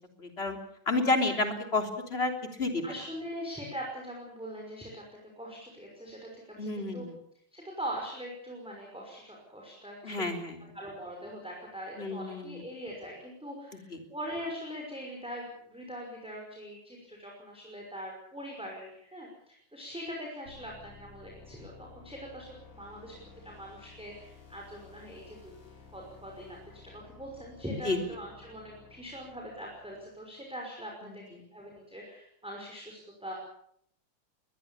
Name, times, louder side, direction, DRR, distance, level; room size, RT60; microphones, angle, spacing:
voice 1, 0.2-0.6 0.9-2.3 2.6-2.8 6.6-7.2 10.0-10.7 12.0-12.6 13.9-14.0 27.9-28.0 31.0-31.2, left 2 dB, 20° left, 5 dB, 3.4 m, -30 dB
voice 2, 2.8-7.1 7.5-10.4 10.7-25.5 25.9-33.3, equal, ahead, -2 dB, 5.6 m, -42 dB
sound 1, 20.5-30.3, left 4 dB, 80° left, 7.4 m, -54 dB
22.0 x 21.0 x 7.2 m, 0.70 s
omnidirectional pair, 3.5 m